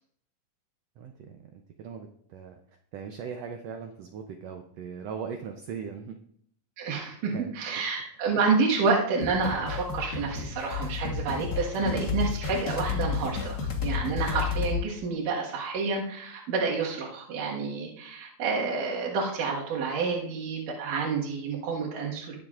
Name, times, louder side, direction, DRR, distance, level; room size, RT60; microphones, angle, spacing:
voice 1, 1.0-2.6 2.9-6.2 7.3-7.5 8.0-8.1, right 6 dB, 90° right, 4 dB, 1.4 m, -39 dB
voice 2, 6.8-13.6 13.8-22.4, right 4 dB, 75° right, -2 dB, 3.1 m, -29 dB
sound 1, 9.2-14.8, left 6 dB, 75° left, 0.8 m, -31 dB
20.0 x 7.0 x 2.4 m, 0.65 s
omnidirectional pair, 3.9 m